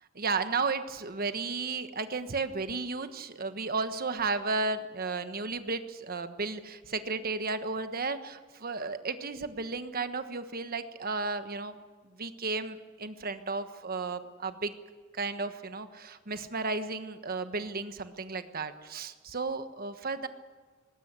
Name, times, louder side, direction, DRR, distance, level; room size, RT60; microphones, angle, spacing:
voice 1, 0.2-11.7 12.2-14.7 15.2-20.3, right 4 dB, 45° right, 9 dB, 1.3 m, -33 dB
19.5 x 17.5 x 8.1 m, 1.5 s
head